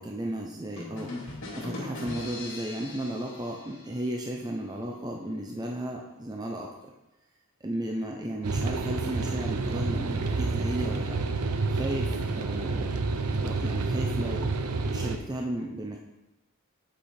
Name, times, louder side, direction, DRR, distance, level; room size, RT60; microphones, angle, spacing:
voice 1, 0.0-6.9 7.6-11.2 11.7-12.9 13.4-14.5 14.9-16.0, right 1 dB, 20° right, 0 dB, 0.5 m, -34 dB
sound 1, 0.8-4.5, left 2 dB, 60° left, 1.8 m, -40 dB
sound 2, 8.4-15.2, right 3 dB, 90° right, 0.6 m, -29 dB
7.8 x 4.9 x 4.3 m, 0.99 s
head